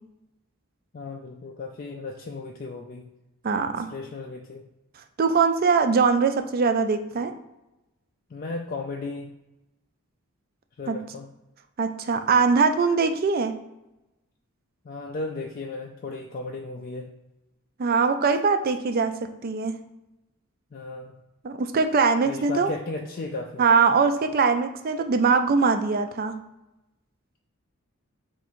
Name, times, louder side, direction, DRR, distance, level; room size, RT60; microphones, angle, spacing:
voice 1, 0.9-3.1 3.9-4.6 8.3-9.3 10.8-11.3 14.8-17.1 20.7-21.1 22.2-23.6, left 3 dB, 40° left, 1 dB, 0.3 m, -35 dB
voice 2, 3.4-3.9 5.2-7.3 10.9-11.0 11.8-13.6 17.8-19.8 21.4-22.7 23.6-26.4, right 5 dB, 40° right, 8 dB, 0.3 m, -22 dB
4.6 x 2.6 x 4.2 m, 0.95 s
head